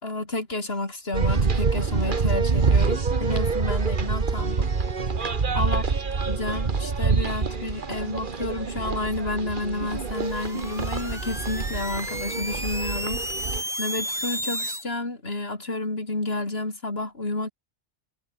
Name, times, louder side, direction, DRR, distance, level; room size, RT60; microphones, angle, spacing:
voice 1, 0.0-4.7 5.5-5.8 6.3-13.4 13.8-17.5, left 2 dB, 60° left, 4.3 m, -30 dB
sound 1, 1.1-13.6, right 4 dB, 45° right, 1.6 m, -26 dB
sound 2, 10.0-14.8, equal, ahead, 6.1 m, -33 dB
omnidirectional pair, 1.2 m